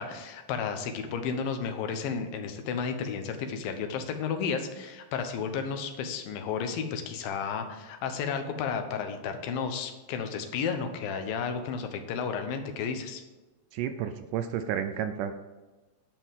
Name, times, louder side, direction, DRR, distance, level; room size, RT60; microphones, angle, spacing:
voice 1, 0.0-13.2, left 6 dB, 85° left, 7 dB, 2.8 m, -32 dB
voice 2, 13.7-15.3, right 9 dB, 80° right, 9 dB, 2.0 m, -31 dB
10.5 x 5.7 x 7.4 m, 1.2 s
omnidirectional pair, 4.0 m